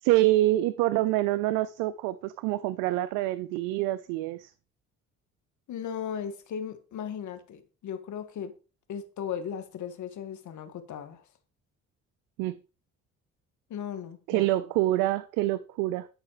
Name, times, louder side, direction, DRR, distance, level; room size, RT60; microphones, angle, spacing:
voice 1, 0.0-4.5 12.4-12.6 14.3-16.1, right 16 dB, 90° right, 0.7 m, -26 dB
voice 2, 5.7-8.5 8.9-11.2 13.7-14.5, left 8 dB, 65° left, 2.2 m, -37 dB
12.5 x 6.6 x 5.0 m
supercardioid pair, 70°, 31 cm